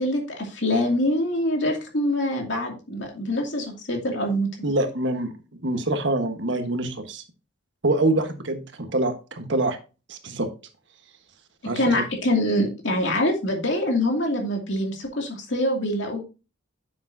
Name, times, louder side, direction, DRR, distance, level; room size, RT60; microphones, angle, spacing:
voice 1, 0.0-4.7 11.6-16.2, left 1 dB, 65° left, 1 dB, 2.5 m, -25 dB
voice 2, 4.6-5.3 5.6-7.2 7.8-9.8 10.1-10.5 11.6-12.0, right 2 dB, 65° right, 7 dB, 1.3 m, -25 dB
9.5 x 7.1 x 2.7 m, 0.31 s
head